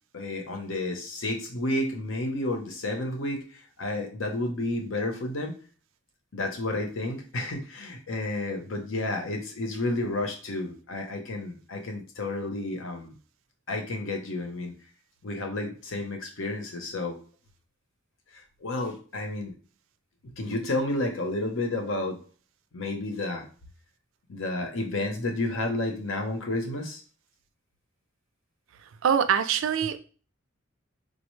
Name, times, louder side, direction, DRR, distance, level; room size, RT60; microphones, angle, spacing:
voice 1, 0.1-3.4 3.8-5.5 6.3-13.1 13.7-14.7 15.2-17.2 18.6-19.5 20.4-22.2 22.7-23.5 24.3-27.0, left 2 dB, 75° left, 4 dB, 0.8 m, -31 dB
voice 2, 29.0-30.0, right 8 dB, 75° right, 10 dB, 0.4 m, -23 dB
4.1 x 2.0 x 3.1 m, 0.39 s
head